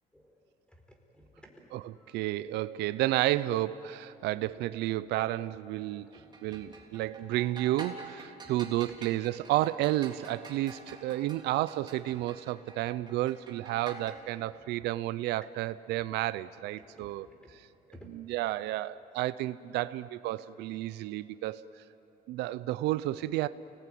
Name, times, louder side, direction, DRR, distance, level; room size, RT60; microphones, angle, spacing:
voice 1, 0.7-2.2 6.1-7.4 8.4-9.0 14.6-14.7 16.9-17.1 17.9-18.1 18.7-18.8, equal, 5° left, 3 dB, 4.7 m, -57 dB
voice 2, 1.7-6.1 6.4-17.3 17.5-17.6 18.1-21.7 22.3-23.5, right 15 dB, 85° right, 15 dB, 0.6 m, -31 dB
sound 1, 6.1-14.1, right 4 dB, 25° right, 3.8 m, -48 dB
29.5 x 19.0 x 9.4 m, 2.9 s
cardioid pair, 110°, 17 cm